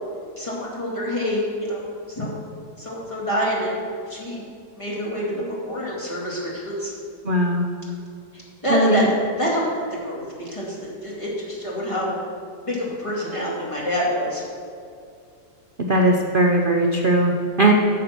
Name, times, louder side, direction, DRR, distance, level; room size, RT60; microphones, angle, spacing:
voice 1, 0.4-2.4 2.8-4.4 4.8-6.9 8.3-9.7 9.9-12.2 12.6-14.4, equal, 20° left, -5 dB, 2.3 m, -27 dB
voice 2, 7.2-7.7 8.7-9.1 15.9-17.7, right 1 dB, 50° right, 1 dB, 0.6 m, -19 dB
10.5 x 6.8 x 5.9 m, 2.3 s
omnidirectional pair, 1.8 m